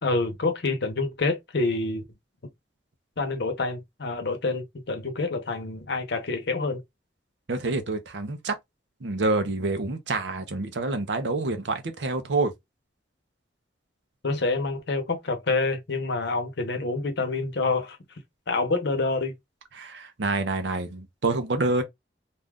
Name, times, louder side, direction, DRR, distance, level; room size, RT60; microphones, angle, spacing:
voice 1, 0.0-2.0 3.2-6.8 14.2-18.0 18.5-19.3, left 3 dB, 65° left, 0.8 m, -27 dB
voice 2, 7.5-8.5 9.0-12.5 19.8-21.8, right 3 dB, 70° right, 0.7 m, -27 dB
2.6 x 2.3 x 3.4 m
head